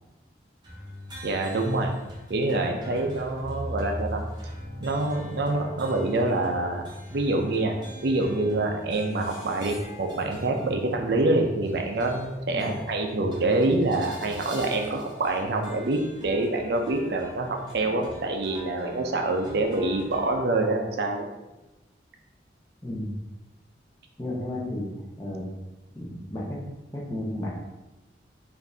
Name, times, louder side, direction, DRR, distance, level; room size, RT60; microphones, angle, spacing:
sound 1, 0.6-20.4, equal, 25° right, 0.8 m, -42 dB
voice 1, 1.2-1.9 2.3-4.2 4.8-6.8 7.1-7.8 8.0-21.3, right 2 dB, 65° right, 2 dB, 0.4 m, -26 dB
voice 2, 22.8-23.1 24.2-24.9 25.2-25.5 25.9-26.6 26.9-27.5, left 1 dB, 20° left, -5 dB, 0.8 m, -33 dB
5.1 x 2.6 x 2.7 m, 1.0 s
head